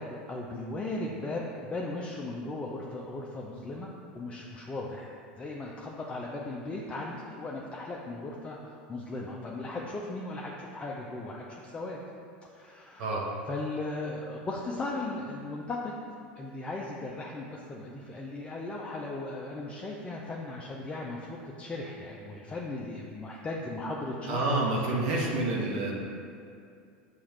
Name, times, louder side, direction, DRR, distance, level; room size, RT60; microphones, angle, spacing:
voice 1, 0.0-3.9 4.1-12.0 12.5-13.1 13.5-16.0 16.4-24.6, left 2 dB, 20° left, -3 dB, 0.5 m, -37 dB
voice 2, 24.3-26.0, right 2 dB, 65° right, -3 dB, 0.8 m, -28 dB
6.9 x 2.4 x 3.2 m, 2.4 s
hypercardioid pair, 85°, 6 cm